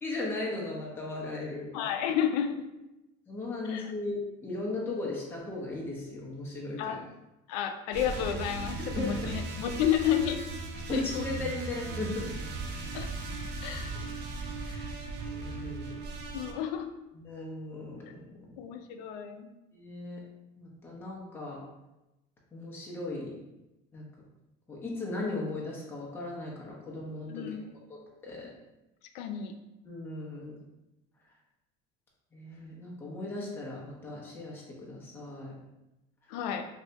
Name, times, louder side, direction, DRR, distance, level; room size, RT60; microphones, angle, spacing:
voice 1, 0.0-1.6 3.3-7.0 9.0-9.3 10.9-12.3 14.6-14.9 15.3-15.9 17.1-18.1 18.4-18.5 19.7-20.2 20.6-21.6 22.5-23.3 23.9-24.0 24.7-27.5 27.9-28.5 29.9-30.5 32.3-35.5, left 2 dB, 10° left, -4 dB, 0.6 m, -37 dB
voice 2, 1.7-2.7 3.6-3.9 6.8-7.0 7.5-10.4 10.9-11.3 12.9-13.1 13.6-13.9 16.3-16.9 18.6-19.5 27.3-27.7 29.1-29.5 36.3-36.7, left 9 dB, 90° left, 7 dB, 0.4 m, -31 dB
sound 1, 7.9-16.5, right 3 dB, 60° right, 0.5 m, -37 dB
2.7 x 2.6 x 3.2 m, 0.97 s
cardioid pair, 130°, 20 cm